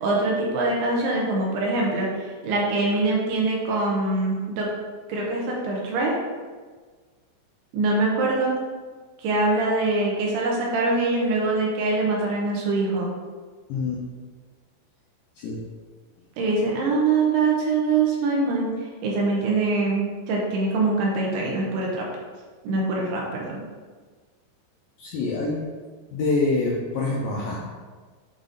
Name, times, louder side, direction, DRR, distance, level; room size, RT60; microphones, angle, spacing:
voice 1, 0.0-2.1 2.4-4.7 5.1-6.2 7.7-8.5 9.2-13.1 16.4-18.7 19.0-22.1 22.6-23.6, right 3 dB, 75° right, -2 dB, 2.9 m, -23 dB
voice 2, 13.7-14.0 15.4-15.6 25.0-25.7 26.1-27.8, left 3 dB, 80° left, -4 dB, 2.1 m, -26 dB
7.8 x 4.0 x 3.9 m, 1.4 s
omnidirectional pair, 5.1 m